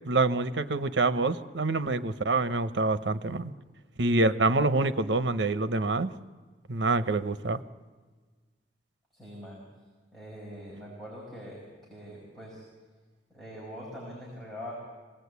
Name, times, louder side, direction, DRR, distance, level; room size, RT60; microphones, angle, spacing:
voice 1, 0.1-3.5 4.0-6.1 6.7-7.6, right 3 dB, 85° right, 11 dB, 0.9 m, -26 dB
voice 2, 9.1-9.6 10.1-12.6 13.3-14.7, equal, ahead, -5 dB, 5.6 m, -43 dB
26.0 x 19.0 x 8.3 m, 1.4 s
head